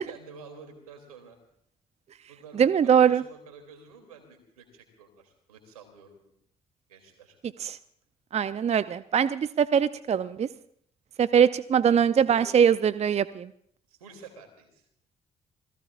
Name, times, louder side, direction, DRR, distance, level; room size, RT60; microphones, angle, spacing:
voice 1, 0.1-1.4 2.3-6.3 6.9-7.4 11.9-12.6 13.9-14.9, right 5 dB, 80° right, 6 dB, 2.9 m, -49 dB
voice 2, 2.6-3.2 7.6-7.8 8.3-10.5 11.2-13.5, right 8 dB, 35° right, 15 dB, 0.6 m, -22 dB
27.0 x 18.5 x 2.5 m, 0.65 s
figure-of-eight pair, 45°, 18 cm